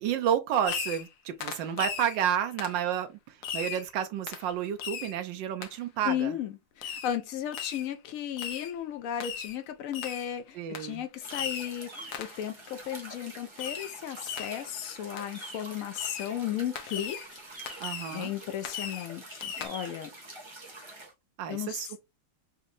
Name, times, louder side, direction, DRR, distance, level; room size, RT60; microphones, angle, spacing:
voice 1, 0.0-3.1 3.5-6.3 10.5-11.0 17.8-18.3 21.4-22.0, right 9 dB, 85° right, 1.3 m, -30 dB
Fireworks, 0.6-1.1 1.4-2.2 2.6-2.8 3.4-3.9 4.3-4.5 4.8-5.2 5.6-5.7 6.8-7.2 7.5-7.9 8.4-8.7 9.2-9.6 9.9-10.3 10.7-10.9 11.3-11.8 12.1-12.4 13.6-14.0 14.3-14.7 15.2-15.3 16.0-16.3 16.8-17.3 17.7-18.2 18.6-19.1 19.4-19.7, left 8 dB, 70° left, 1.1 m, -37 dB
voice 2, 6.0-17.4 17.7-20.1 21.5-21.9, left 10 dB, 90° left, 0.7 m, -35 dB
sound 1, 11.2-21.1, right 2 dB, 20° right, 0.8 m, -46 dB
4.1 x 2.5 x 2.6 m
omnidirectional pair, 2.0 m